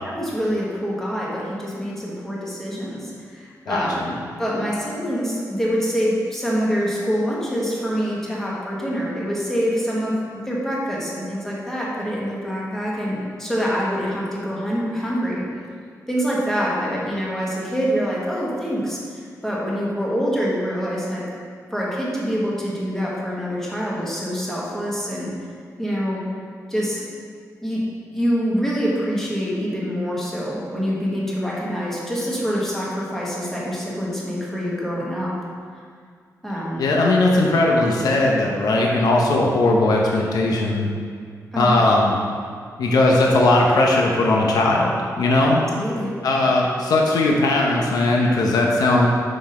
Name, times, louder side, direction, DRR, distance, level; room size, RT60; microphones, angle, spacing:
voice 1, 0.0-15.5 16.1-21.2 21.7-25.3 25.8-26.2 26.7-27.1 27.6-27.8 28.1-35.3 36.4-36.8 41.5-41.7 45.7-46.1, equal, 5° left, -6 dB, 1.4 m, -25 dB
voice 2, 3.7-4.1 36.8-40.9 41.6-42.2 42.8-45.6 46.2-49.1, left 2 dB, 90° left, -1 dB, 0.8 m, -18 dB
6.0 x 5.3 x 4.2 m, 2.1 s
wide cardioid pair, 150°, 6 cm